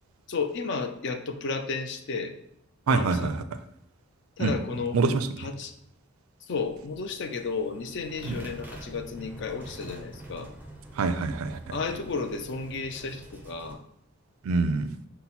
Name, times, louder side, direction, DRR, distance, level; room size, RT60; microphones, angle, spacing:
voice 1, 0.3-2.3 2.9-3.5 4.4-5.0 5.4-5.7 6.5-10.5 11.7-13.8, left 4 dB, 55° left, 7 dB, 0.4 m, -33 dB
voice 2, 2.9-3.4 4.4-4.5 4.9-5.3 8.2-8.4 11.0-11.8 14.4-14.9, right 4 dB, 75° right, 10 dB, 0.4 m, -25 dB
sound 1, 6.5-13.8, right 1 dB, 10° right, 0.4 m, -46 dB
5.6 x 2.1 x 4.1 m, 0.72 s
head